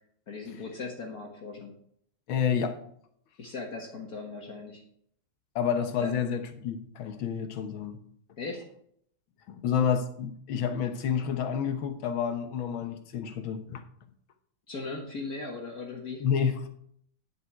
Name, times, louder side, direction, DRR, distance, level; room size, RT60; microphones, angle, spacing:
voice 1, 0.3-1.8 3.4-4.8 6.0-6.1 8.4-8.7 14.7-16.3, left 3 dB, 50° left, 1.8 m, -38 dB
voice 2, 2.3-2.8 5.6-8.0 9.5-13.8 16.2-16.7, left 7 dB, 80° left, 1.9 m, -29 dB
10.5 x 7.0 x 4.6 m
omnidirectional pair, 2.2 m